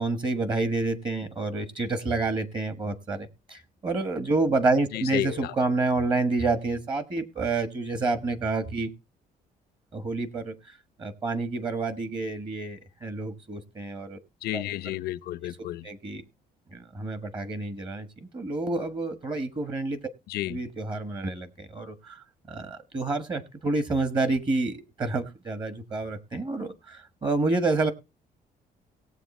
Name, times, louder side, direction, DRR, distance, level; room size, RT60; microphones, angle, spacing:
voice 1, 0.0-8.9 9.9-14.2 14.5-14.6 15.8-16.2 16.7-18.1 18.3-20.0 20.5-27.9, right 3 dB, 30° right, 1.3 m, -29 dB
voice 2, 4.9-5.5 14.4-15.8 20.3-20.6, left 15 dB, 85° left, 0.7 m, -31 dB
17.5 x 7.6 x 4.2 m
cardioid pair, 125°, 16 cm